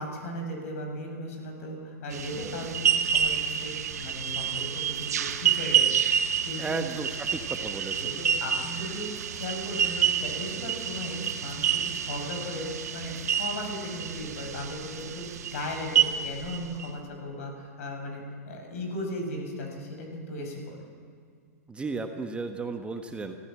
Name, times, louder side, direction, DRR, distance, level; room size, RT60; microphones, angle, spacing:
voice 1, 0.0-6.0 6.4-6.8 8.0-9.1 9.3-12.7 12.9-20.8, left 1 dB, 65° left, 3 dB, 6.4 m, -37 dB
sound 1, 2.1-16.9, right 8 dB, 80° right, 1.3 m, -28 dB
voice 2, 6.6-8.2 21.7-23.4, right 3 dB, 15° right, 5 dB, 1.2 m, -34 dB
23.5 x 14.5 x 7.6 m, 2.2 s
hypercardioid pair, 120°, 8 cm